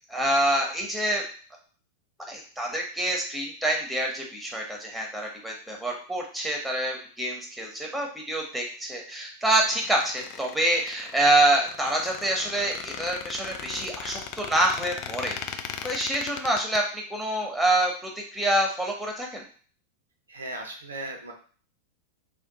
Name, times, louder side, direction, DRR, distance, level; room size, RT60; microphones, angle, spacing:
voice 1, 0.1-1.2 2.3-19.4, right 1 dB, 5° right, 0 dB, 0.8 m, -26 dB
Squeak, 9.6-16.8, left 8 dB, 40° left, 0.3 m, -38 dB
voice 2, 20.3-21.3, right 2 dB, 75° right, 2 dB, 0.6 m, -37 dB
2.5 x 2.3 x 3.9 m, 0.43 s
figure-of-eight pair, 90°, 0 cm